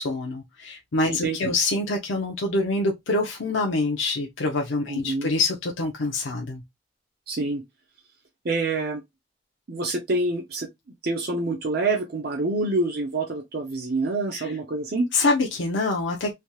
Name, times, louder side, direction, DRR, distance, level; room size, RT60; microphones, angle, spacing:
voice 1, 0.0-6.6 14.3-14.5 15.1-16.3, left 2 dB, 85° left, 0.6 m, -25 dB
voice 2, 4.9-5.3 7.3-7.6 8.4-9.0 9.7-10.7 11.0-15.1, right 2 dB, 55° right, 0.6 m, -26 dB
3.3 x 2.8 x 2.3 m
head